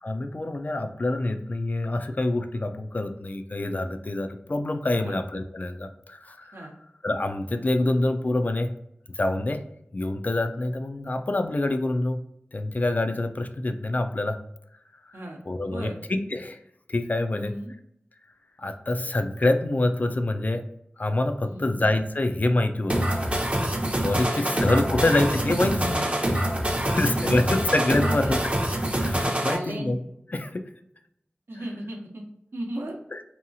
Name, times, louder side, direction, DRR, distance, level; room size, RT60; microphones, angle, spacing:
voice 1, 0.0-6.7 7.0-8.7 9.2-9.6 9.9-12.2 12.5-14.4 15.1-15.2 15.5-16.6 16.9-17.5 18.6-20.7 21.0-23.1 24.0-28.4 29.0-30.0 30.3-30.7 33.1-33.2, left 2 dB, 45° left, 7 dB, 0.3 m, -26 dB
voice 2, 15.1-16.0 17.3-17.7 21.4-21.8 24.1-25.0 25.3-25.4 26.7-27.6 28.0-28.3 29.5-30.0 31.5-32.2 32.5-33.0, right 1 dB, 75° right, 1 dB, 0.6 m, -37 dB
sound 1, 22.9-29.6, right 1 dB, 30° right, 0.6 m, -25 dB
2.8 x 2.3 x 2.6 m, 0.75 s
wide cardioid pair, 50°, 4 cm